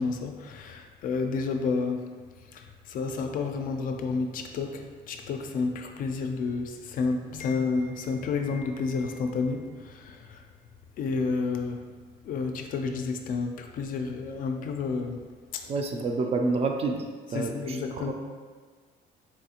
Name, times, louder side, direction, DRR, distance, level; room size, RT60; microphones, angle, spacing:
voice 1, 0.0-2.1 2.5-10.4 11.0-11.9 12.2-15.2 15.5-15.7 17.3-18.1, left 4 dB, 55° left, 5 dB, 0.4 m, -30 dB
voice 2, 15.7-17.0 17.3-18.1, right 3 dB, 35° right, 4 dB, 0.4 m, -28 dB
4.2 x 2.3 x 2.8 m, 1.5 s
cardioid pair, 110°, 17 cm